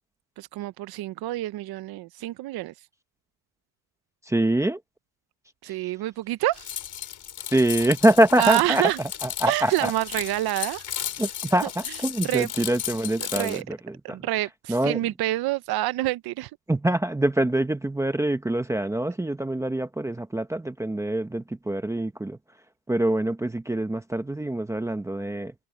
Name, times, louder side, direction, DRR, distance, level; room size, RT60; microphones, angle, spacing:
voice 1, 0.4-2.7 5.6-6.7 8.4-9.0 9.5-10.8 12.2-12.5 13.3-13.6 14.0-16.5, right 16 dB, 70° right, 0.6 m, -27 dB
voice 2, 4.2-4.8 7.5-8.8 9.2-9.9 11.2-14.2 14.7-15.0 16.7-22.4 22.9-25.5, right 1 dB, 10° right, 0.8 m, -24 dB
sound 1, 6.5-13.6, left 10 dB, 50° left, 3.7 m, -35 dB
cardioid pair, 170°, 39 cm